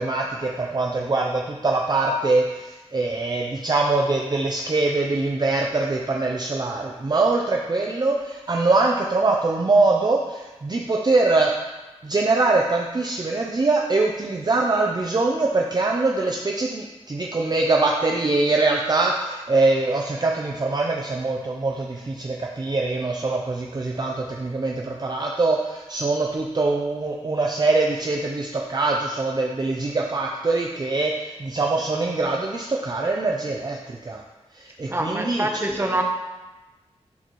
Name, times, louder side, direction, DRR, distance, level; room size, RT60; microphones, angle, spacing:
voice 1, 0.0-11.5 12.0-34.2 34.5-36.0, right 3 dB, 35° right, 0 dB, 0.6 m, -23 dB
voice 2, 34.9-36.0, right 1 dB, 20° right, 2 dB, 1.0 m, -25 dB
10.5 x 4.2 x 3.1 m, 1.1 s
wide cardioid pair, 65°, 12 cm